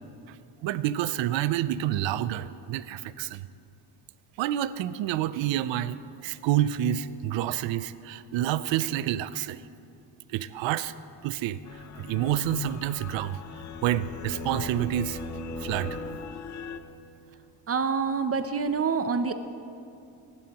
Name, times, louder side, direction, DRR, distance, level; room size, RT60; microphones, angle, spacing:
voice 1, 0.6-3.5 4.4-9.6 10.3-10.9 11.2-13.4 13.8-15.2 15.6-16.0, right 12 dB, 90° right, 15 dB, 0.6 m, -28 dB
sound 1, 11.7-16.8, left 7 dB, 40° left, 0.6 m, -42 dB
sound 2, 12.9-16.7, left 1 dB, 25° left, 1.3 m, -39 dB
voice 2, 17.7-19.3, right 5 dB, 35° right, 9 dB, 0.6 m, -26 dB
20.0 x 11.0 x 2.9 m, 2.7 s
cardioid pair, 105°, 43 cm